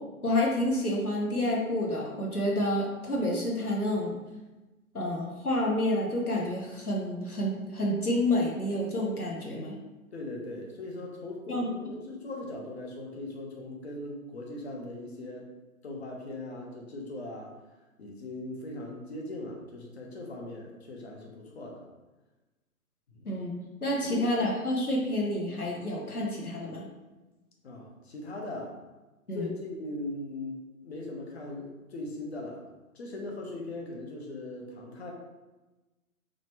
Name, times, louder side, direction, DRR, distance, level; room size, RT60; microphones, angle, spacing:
voice 1, 0.2-4.1 4.9-9.8 11.5-11.7 23.2-23.5 23.8-26.9 29.3-29.5, left 1 dB, 90° left, -1 dB, 1.2 m, -29 dB
voice 2, 10.1-15.5 15.8-17.5 18.0-21.9 23.1-23.3 24.0-24.2 27.6-28.8 29.3-30.6 30.8-32.6 32.9-35.1, left 2 dB, 45° left, 0 dB, 1.0 m, -39 dB
4.1 x 3.1 x 2.9 m, 1.1 s
figure-of-eight pair, 125°, 43 cm